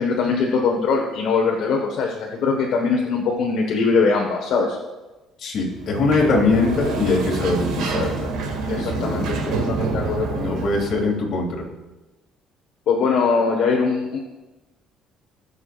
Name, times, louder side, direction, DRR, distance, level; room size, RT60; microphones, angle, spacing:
voice 1, 0.0-4.8 8.7-10.6 12.9-14.2, left 4 dB, 65° left, 0 dB, 1.4 m, -22 dB
voice 2, 5.4-8.3 8.7-9.3 10.3-11.7, left 3 dB, 50° left, -1 dB, 2.7 m, -22 dB
Sliding door, 5.7-11.1, right 4 dB, 80° right, 2.2 m, -27 dB
20.5 x 6.9 x 2.5 m, 1.1 s
cardioid pair, 130°, 0 cm